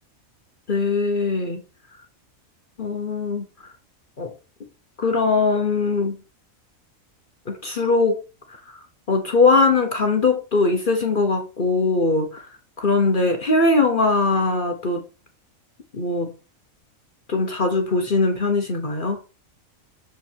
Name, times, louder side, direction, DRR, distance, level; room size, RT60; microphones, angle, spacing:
voice 1, 0.7-1.6 2.8-3.4 4.2-4.3 5.0-6.2 7.5-8.2 8.7-8.8 9.1-12.5 12.8-15.0 15.9-16.3 17.3-19.2, left 3 dB, 40° left, 5 dB, 1.1 m, -21 dB
7.3 x 5.1 x 3.5 m, 0.32 s
omnidirectional pair, 1.5 m